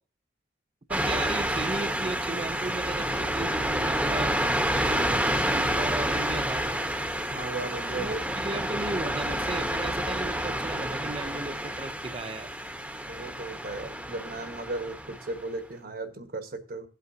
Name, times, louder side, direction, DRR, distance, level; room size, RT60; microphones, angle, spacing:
sound 1, 0.9-15.4, right 1 dB, 10° right, 1.0 m, -29 dB
voice 1, 0.9-6.8 7.9-12.5, right 3 dB, 35° right, 0.5 m, -36 dB
voice 2, 7.3-8.2 13.1-16.9, right 2 dB, 55° right, 1.4 m, -36 dB
17.5 x 8.2 x 2.7 m
head